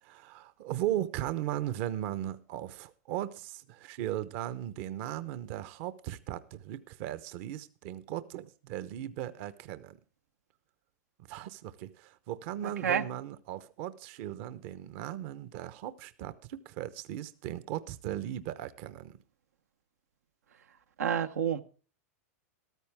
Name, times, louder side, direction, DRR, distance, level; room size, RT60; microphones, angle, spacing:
voice 1, 0.0-10.0 11.3-19.2, right 12 dB, 55° right, 0.9 m, -37 dB
voice 2, 21.0-21.6, right 8 dB, 90° right, 0.9 m, -28 dB
14.0 x 13.0 x 3.5 m
hypercardioid pair, 120°, 8 cm